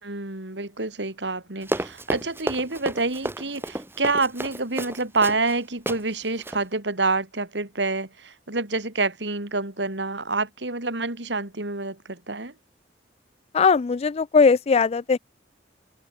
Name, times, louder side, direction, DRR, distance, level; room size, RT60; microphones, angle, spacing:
voice 1, 0.0-12.5, right 3 dB, 75° right, 3.3 m, -27 dB
Run, 1.6-5.6 5.9-6.0 6.4-6.6, right 1 dB, 15° right, 2.3 m, -31 dB
voice 2, 13.5-15.2, left 5 dB, 35° left, 0.4 m, -19 dB
head